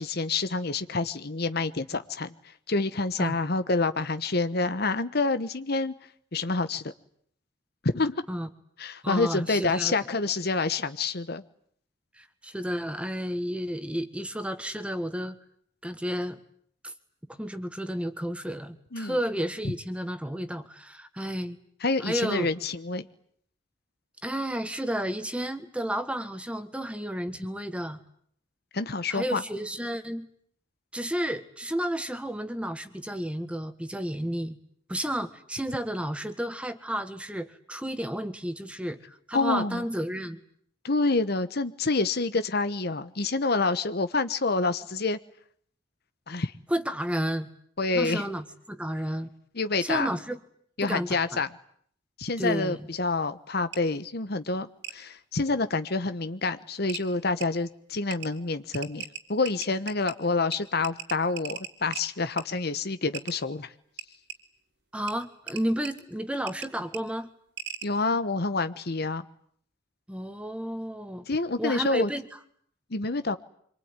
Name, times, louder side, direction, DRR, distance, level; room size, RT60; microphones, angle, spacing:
voice 1, 0.0-2.3 2.7-5.9 6.3-6.9 7.8-8.2 8.8-11.4 18.9-19.2 21.8-23.1 28.7-29.4 39.3-39.8 40.8-45.2 46.3-46.5 47.8-48.2 49.5-50.1 50.8-51.5 52.2-63.7 67.8-69.2 71.3-72.1 72.9-73.4, left 3 dB, 55° left, 12 dB, 1.2 m, -27 dB
voice 2, 9.0-9.9 12.2-15.4 15.8-16.4 16.8-16.9 17.4-21.6 22.0-22.5 24.2-28.0 29.1-30.3 30.9-34.6 34.9-40.4 46.7-47.5 47.9-49.3 49.8-50.4 50.8-51.4 52.4-52.9 64.9-67.3 70.1-71.3 71.6-72.2, equal, 5° right, 9 dB, 1.8 m, -32 dB
sound 1, 53.7-53.8 54.8-55.0 56.3-56.4 56.9-57.0 57.4-57.5 58.1-58.3 58.7-60.1 60.5-60.6 60.8-62.0 62.4-62.5 63.1-63.3 64.0-64.4 65.1-65.2 65.5-65.9 66.5-66.7 66.9-67.0 67.6-67.9, right 9 dB, 70° right, 3.5 m, -37 dB
26.0 x 23.0 x 9.8 m, 0.65 s
head